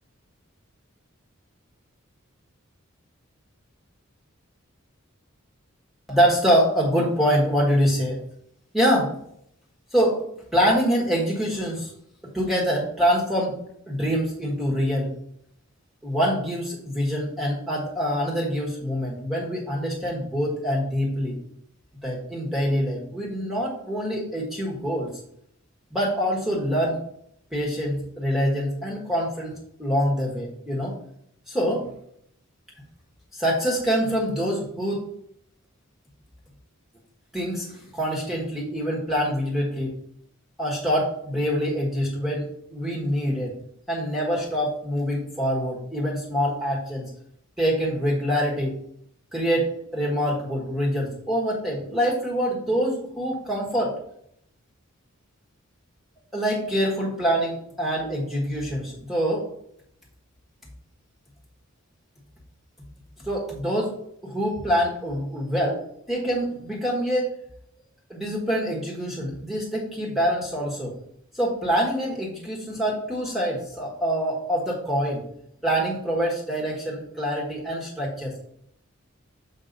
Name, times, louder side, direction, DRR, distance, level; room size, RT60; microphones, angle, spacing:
voice 1, 6.1-8.2 8.7-9.1 9.9-10.2 10.5-11.9 12.2-13.6 13.9-15.1 16.0-21.4 22.0-25.1 25.9-27.0 27.5-29.5 29.8-30.9 31.5-31.9 33.3-35.1 37.3-40.0 40.6-43.5 43.9-47.0 47.6-48.8 49.3-54.0 56.3-59.4 63.2-64.0 64.2-67.3 68.1-70.9 71.3-75.2 75.6-78.4, equal, ahead, -4 dB, 1.4 m, -25 dB
6.5 x 5.3 x 4.0 m, 0.70 s
head